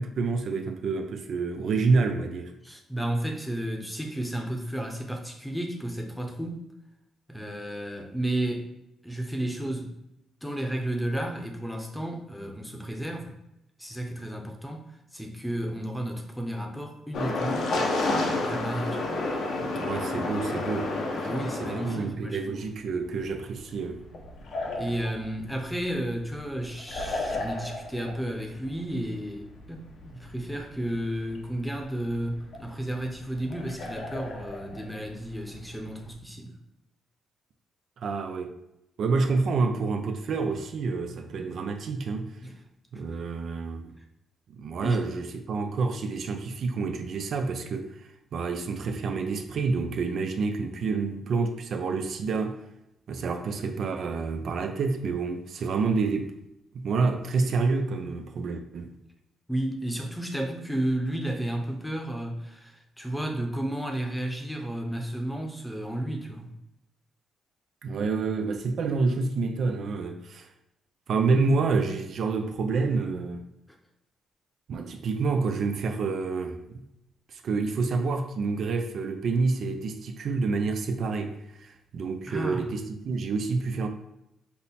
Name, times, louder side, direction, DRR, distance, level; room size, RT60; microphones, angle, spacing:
voice 1, 0.0-2.5 19.6-21.3 21.6-24.0 38.0-38.5 39.0-42.4 42.9-43.9 44.5-52.6 53.1-56.4 56.7-58.9 67.8-70.5 71.1-73.4 74.7-76.8 77.3-83.9, right 4 dB, 60° right, 0.5 m, -28 dB
voice 2, 2.6-6.6 7.3-8.7 9.0-9.9 10.4-13.3 13.8-17.7 18.1-19.0 21.2-22.7 24.7-36.6 42.4-42.6 44.8-45.0 59.5-66.5 73.7-73.8 82.3-82.6, right 1 dB, 5° left, 0.8 m, -32 dB
sound 1, 17.1-22.1 22.9-36.1, left 2 dB, 70° left, 0.8 m, -33 dB
5.5 x 2.0 x 4.2 m
cardioid pair, 90°, 0 cm